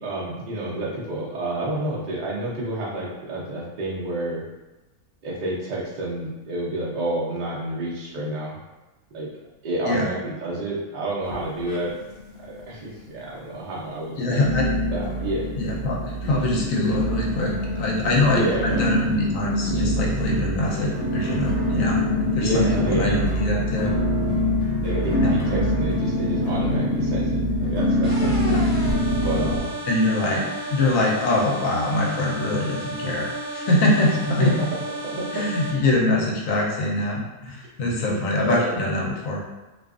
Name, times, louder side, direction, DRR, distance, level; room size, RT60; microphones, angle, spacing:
voice 1, 0.0-4.4 5.2-8.6 9.1-9.3 9.6-11.9 12.4-14.5 14.9-15.4 18.3-18.8 22.4-23.2 24.8-28.6 29.2-29.7 34.3-34.7 35.1-35.4 38.1-38.7 39.1-39.2, right 1 dB, 85° right, -5 dB, 0.4 m, -29 dB
sound 1, 11.2-12.2 12.4-13.1 13.6-13.7 14.4-29.6, left 1 dB, 90° left, 0.5 m, -24 dB
voice 2, 14.2-14.7 15.6-22.0 22.3-23.9 25.2-25.3 28.5-28.6 29.9-34.5 35.3-39.4, left 2 dB, 70° left, -2 dB, 0.9 m, -23 dB
sound 2, 28.0-35.7, right 1 dB, 20° left, 0.4 m, -33 dB
2.4 x 2.4 x 2.3 m, 1.1 s
omnidirectional pair, 1.6 m